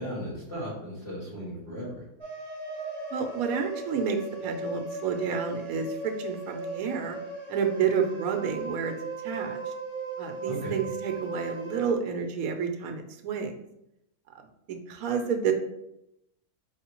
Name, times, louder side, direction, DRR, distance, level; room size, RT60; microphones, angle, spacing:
voice 1, 0.0-2.0 10.4-10.8, equal, 40° left, -10 dB, 1.6 m, -36 dB
sound 1, 2.2-11.9, right 3 dB, 25° right, 0.7 m, -37 dB
voice 2, 3.1-7.2 7.5-8.9 9.2-9.6 10.2-13.6 14.4-15.5, right 6 dB, 75° right, 5 dB, 1.1 m, -30 dB
4.8 x 3.1 x 2.9 m, 0.83 s
omnidirectional pair, 1.5 m